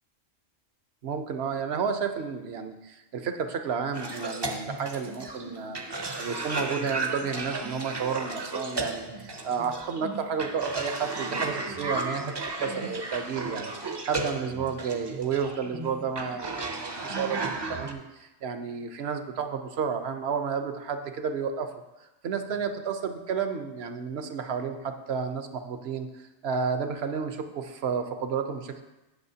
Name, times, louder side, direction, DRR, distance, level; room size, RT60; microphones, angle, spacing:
voice 1, 1.0-5.8 6.2-21.7 22.2-26.1 26.4-28.8, right 6 dB, 65° right, 7 dB, 1.0 m, -31 dB
Cough, 3.9-17.9, right 3 dB, 30° right, 0.5 m, -34 dB
16.0 x 6.3 x 2.8 m, 1.0 s
omnidirectional pair, 1.2 m